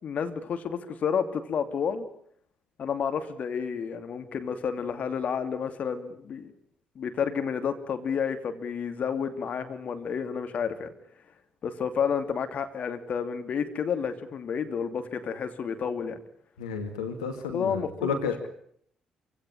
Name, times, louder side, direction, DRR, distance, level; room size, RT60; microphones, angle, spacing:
voice 1, 0.0-2.1 2.8-6.5 7.0-10.9 11.6-16.2 17.5-18.1, left 7 dB, 45° left, 8 dB, 2.8 m, -30 dB
voice 2, 16.6-18.5, left 5 dB, 75° left, 5 dB, 2.4 m, -32 dB
26.5 x 17.0 x 9.9 m, 0.67 s
figure-of-eight pair, 40°, 3 cm